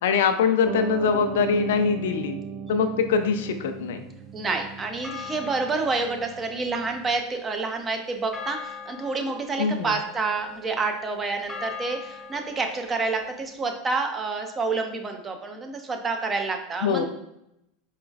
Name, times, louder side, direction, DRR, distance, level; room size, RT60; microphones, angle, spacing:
voice 1, 0.0-2.4 2.7-4.0 9.6-10.0 16.8-17.0, left 6 dB, 75° left, 8 dB, 0.4 m, -23 dB
Piano, 0.6-7.2, right 7 dB, 50° right, 0.4 m, -37 dB
sound 1, 3.2-4.6 5.0-13.6, left 5 dB, 20° left, 0.6 m, -43 dB
voice 2, 4.3-17.0, right 3 dB, 25° right, 4 dB, 0.7 m, -28 dB
4.9 x 3.1 x 2.3 m, 0.81 s
hypercardioid pair, 100°, 0 cm